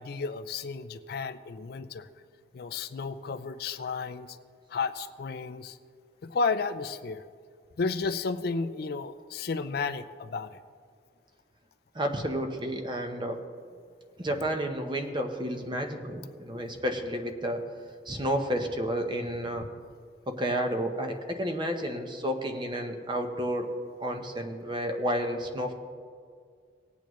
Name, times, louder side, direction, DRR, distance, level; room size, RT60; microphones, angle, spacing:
voice 1, 0.0-2.1 2.5-4.4 4.7-5.8 6.2-7.2 7.8-10.6, left 4 dB, 55° left, 11 dB, 0.4 m, -32 dB
voice 2, 11.9-13.4 14.2-17.6 18.1-19.7 20.3-23.7 24.0-25.7, equal, 25° right, 5 dB, 0.9 m, -31 dB
19.0 x 8.5 x 3.1 m, 2.1 s
head